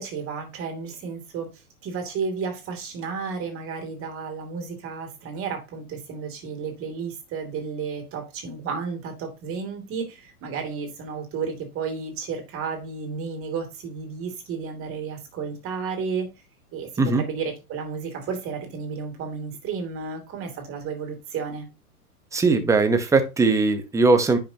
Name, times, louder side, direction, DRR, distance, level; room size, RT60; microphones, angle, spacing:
voice 1, 0.0-1.5 1.8-16.3 16.7-21.7, right 5 dB, 30° right, 2.8 m, -32 dB
voice 2, 22.3-24.4, right 3 dB, 5° right, 0.9 m, -20 dB
10.0 x 5.8 x 2.9 m
hypercardioid pair, 130°, 46 cm